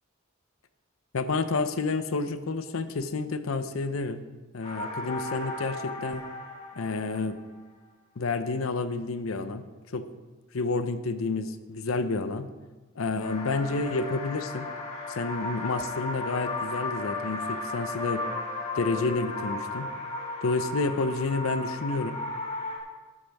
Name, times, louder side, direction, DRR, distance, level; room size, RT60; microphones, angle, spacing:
voice 1, 1.1-4.2 4.5-6.2 6.8-7.4 8.2-9.6 9.9-10.1 10.5-12.5 13.0-14.7 15.1-18.2 18.7-19.9 20.4-22.2, left 3 dB, 85° left, 10 dB, 0.7 m, -29 dB
sound 1, 4.6-7.6 13.2-22.8, left 2 dB, 30° left, 2.4 m, -35 dB
12.5 x 11.5 x 3.5 m, 1.3 s
head